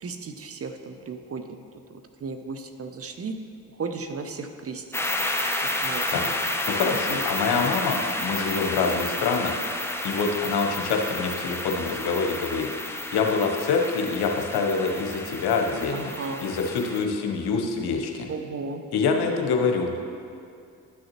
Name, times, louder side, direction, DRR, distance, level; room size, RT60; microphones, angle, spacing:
voice 1, 0.0-1.6 1.9-3.4 3.8-4.8 5.8-6.0 7.1-7.2 15.9-16.5 18.3-18.8, right 4 dB, 35° right, 7 dB, 0.7 m, -35 dB
sound 1, 4.9-17.0, left 1 dB, 5° left, 0.7 m, -31 dB
voice 2, 6.1-9.6 10.0-16.1 16.4-18.3 18.9-19.9, left 4 dB, 70° left, 3 dB, 1.0 m, -26 dB
11.0 x 6.3 x 3.0 m, 2.4 s
hypercardioid pair, 45°, 41 cm